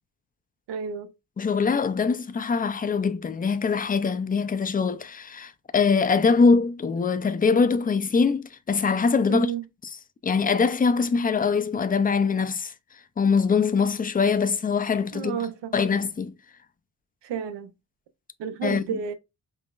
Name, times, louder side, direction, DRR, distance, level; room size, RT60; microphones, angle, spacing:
voice 1, 0.7-1.1 9.3-9.6 15.1-15.7 17.2-17.7 18.4-19.1, right 7 dB, 85° right, 0.6 m, -31 dB
voice 2, 1.4-9.5 10.2-12.7 13.2-15.4 15.7-16.3 18.6-18.8, left 5 dB, 20° left, 0.4 m, -23 dB
5.4 x 2.0 x 2.4 m
cardioid pair, 65°, 41 cm